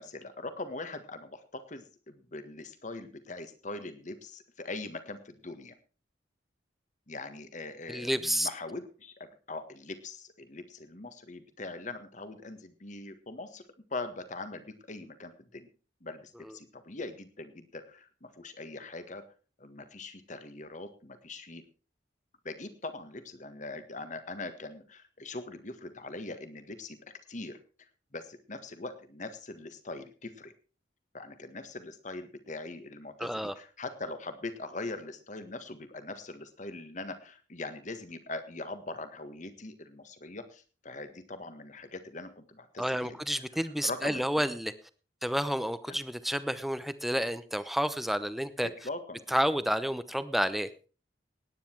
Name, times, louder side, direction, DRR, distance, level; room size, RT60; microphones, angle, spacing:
voice 1, 0.0-5.7 7.1-13.6 13.9-15.7 16.0-19.2 19.6-21.6 22.4-27.6 28.1-30.5 31.1-43.2 43.8-44.2 45.9-46.0 48.6-49.2, left 2 dB, 40° left, 10 dB, 1.6 m, -42 dB
voice 2, 7.9-8.5 16.4-16.5 33.2-33.5 42.8-44.7 45.2-48.7 49.3-50.7, equal, ahead, 13 dB, 0.8 m, -30 dB
18.0 x 9.7 x 4.6 m, 0.36 s
head